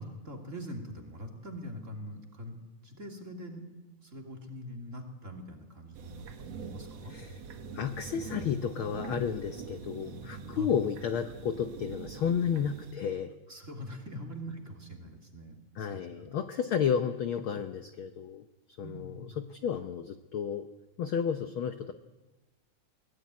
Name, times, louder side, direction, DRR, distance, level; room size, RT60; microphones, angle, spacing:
voice 1, 0.0-2.6 2.8-3.7 4.0-6.3 6.5-7.2 10.5-10.8 12.2-12.3 13.5-16.3 18.8-19.4, equal, 25° right, 2 dB, 2.9 m, -43 dB
sound 1, 5.9-12.9, right 5 dB, 60° right, 2.5 m, -44 dB
voice 2, 7.0-7.4 7.7-13.3 14.1-14.2 15.7-18.4 18.8-20.7 21.0-21.9, left 7 dB, 70° left, 8 dB, 1.3 m, -32 dB
22.5 x 17.0 x 9.6 m, 1.1 s
omnidirectional pair, 3.4 m